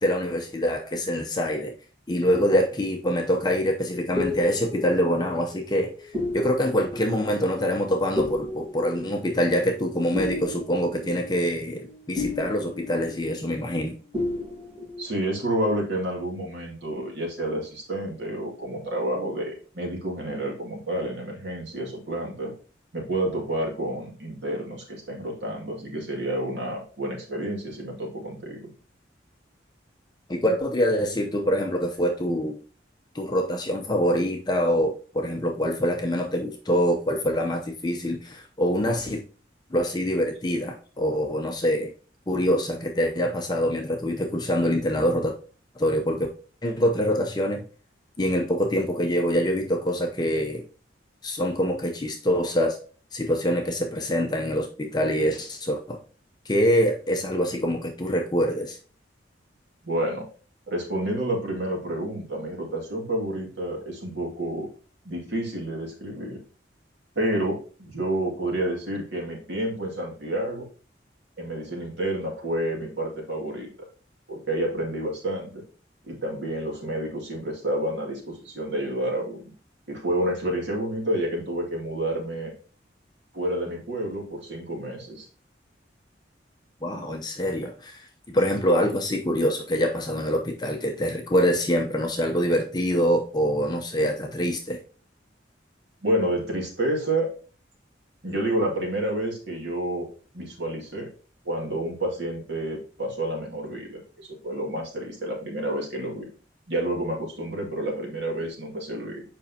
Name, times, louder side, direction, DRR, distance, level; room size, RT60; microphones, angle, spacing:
voice 1, 0.0-1.7 2.1-14.0 30.3-32.6 33.1-39.2 39.7-41.9 42.3-45.3 45.8-46.3 46.6-47.6 48.2-50.6 51.2-52.8 53.1-56.0 56.5-58.8 86.8-88.1 88.3-94.8, equal, 20° left, 0.7 m, -25 dB
sound 1, 3.8-13.9 14.1-15.0, left 2 dB, 25° right, 1.6 m, -34 dB
voice 2, 15.0-22.5 22.9-28.7 59.8-60.3 60.7-64.7 65.0-66.4 67.2-70.7 71.4-73.7 74.3-75.6 76.1-79.5 79.9-82.5 83.3-85.3 96.0-97.3 98.2-100.1 100.3-101.1 101.4-106.3 106.7-109.2, right 1 dB, 70° right, 2.3 m, -29 dB
7.5 x 5.2 x 2.8 m
head